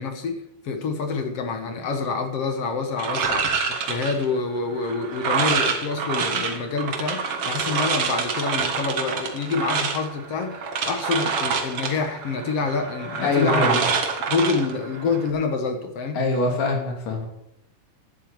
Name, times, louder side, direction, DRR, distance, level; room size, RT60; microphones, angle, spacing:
voice 1, 0.0-13.8 14.3-16.2, left 4 dB, 55° left, 6 dB, 2.1 m, -27 dB
sound 1, 3.0-15.3, right 5 dB, 50° right, 2.1 m, -27 dB
voice 2, 13.2-13.9 16.1-17.3, left 3 dB, 75° left, 1 dB, 4.4 m, -24 dB
11.5 x 8.3 x 8.8 m, 0.82 s
omnidirectional pair, 3.8 m